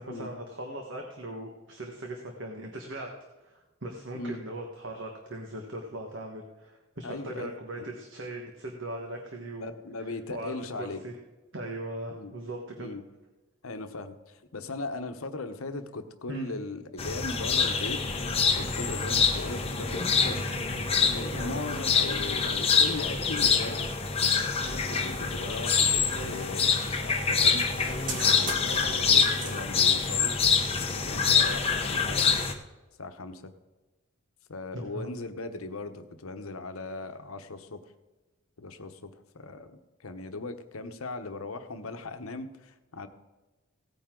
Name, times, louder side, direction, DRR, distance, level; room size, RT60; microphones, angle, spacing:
voice 1, 0.0-3.1 3.4-9.7 10.0-11.1 11.5-12.9 16.3-16.5 21.3-21.6 34.7-35.1, right 1 dB, 60° right, 2 dB, 1.4 m, -39 dB
voice 2, 7.0-7.5 9.6-11.0 12.1-12.3 12.8-13.0 13.6-18.0 18.5-20.4 21.0-23.9 24.9-27.7 28.4-30.4 30.9-32.4 33.0-33.5 34.5-37.8 38.6-43.1, left 3 dB, 80° left, 8 dB, 1.0 m, -38 dB
sound 1, 17.0-32.5, left 5 dB, 25° left, 1.0 m, -26 dB
sound 2, 24.0-31.9, right 2 dB, 40° right, 1.7 m, -44 dB
17.0 x 9.2 x 3.8 m, 1.1 s
head